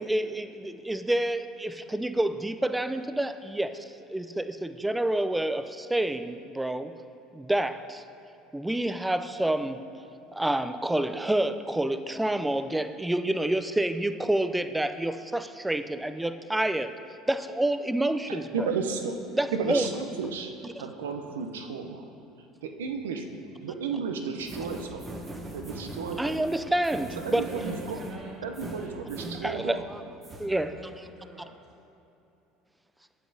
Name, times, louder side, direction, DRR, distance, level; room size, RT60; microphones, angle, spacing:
voice 1, 0.0-6.9 7.3-8.0 8.5-9.8 10.3-16.9 17.3-18.7 19.3-19.9 26.2-27.5 29.4-30.1 30.4-30.7, right 1 dB, 10° right, 10 dB, 0.4 m, -28 dB
voice 2, 18.3-19.2 19.5-20.5 20.8-22.1 22.6-23.2 23.6-25.2 25.5-26.4 27.2-28.0 28.4-29.8, right 5 dB, 90° right, 5 dB, 0.6 m, -33 dB
sound 1, 24.4-30.0 30.2-30.5, right 1 dB, 25° right, 1.0 m, -41 dB
voice 3, 27.4-28.3 28.6-28.9 30.6-31.5, right 1 dB, 40° right, -3 dB, 1.6 m, -44 dB
9.5 x 7.6 x 2.7 m, 2.9 s
hypercardioid pair, 80°, 0 cm